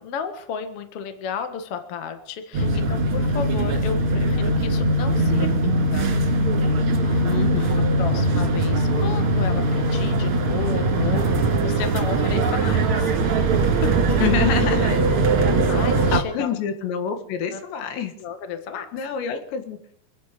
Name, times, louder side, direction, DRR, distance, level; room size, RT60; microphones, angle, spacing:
voice 1, 0.0-6.1 7.0-7.3 8.0-13.1 13.8-14.2 15.7-16.5 17.5-17.6 18.2-18.9, left 6 dB, 60° left, 8 dB, 1.6 m, -33 dB
sound 1, 2.5-16.2, right 2 dB, 45° right, 2.0 m, -21 dB
voice 2, 2.6-2.9 7.2-7.9 14.2-15.0 16.1-18.1 18.9-19.9, left 8 dB, 85° left, 7 dB, 3.9 m, -27 dB
26.5 x 9.2 x 5.2 m, 0.67 s
omnidirectional pair, 5.0 m